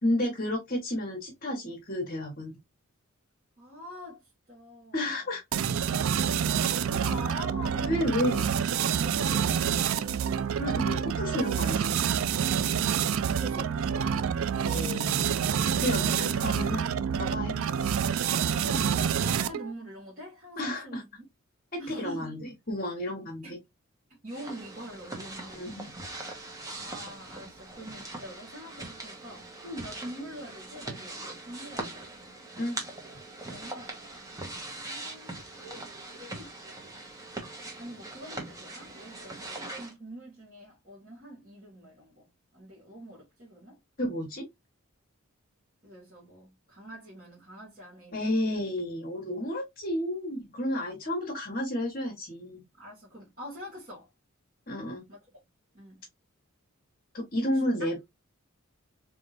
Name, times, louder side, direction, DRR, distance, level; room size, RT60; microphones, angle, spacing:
voice 1, 0.0-2.5 4.9-5.4 7.8-8.5 10.6-12.1 14.6-15.4 15.8-16.8 17.1-17.7 20.6-21.0 21.7-23.6 25.4-25.9 32.6-32.8 44.0-44.5 48.1-52.6 54.7-55.0 57.1-58.0, left 1 dB, 40° left, 1.3 m, -31 dB
voice 2, 3.6-5.3 6.6-8.4 13.3-14.3 18.3-21.2 21.8-22.4 23.4-23.6 24.1-25.6 26.7-32.1 33.4-34.0 34.8-36.5 37.8-42.3 42.5-43.8 45.8-48.6 52.7-54.1 55.1-55.2 55.7-56.0 57.5-57.9, equal, 40° right, 2.2 m, -45 dB
sound 1, 5.5-19.7, right 8 dB, 70° right, 0.4 m, -27 dB
sound 2, 24.3-39.9, right 2 dB, 15° right, 1.1 m, -41 dB
4.1 x 3.5 x 2.5 m
head